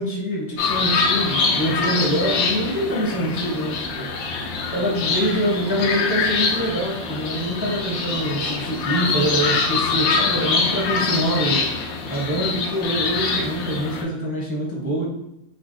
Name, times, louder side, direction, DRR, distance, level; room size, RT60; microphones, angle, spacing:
voice 1, 0.0-4.1 4.7-11.6 12.1-15.0, equal, 20° right, -4 dB, 0.4 m, -25 dB
sound 1, 0.6-14.0, left 4 dB, 85° left, 1.1 m, -24 dB
3.8 x 3.2 x 2.6 m, 0.84 s
omnidirectional pair, 1.5 m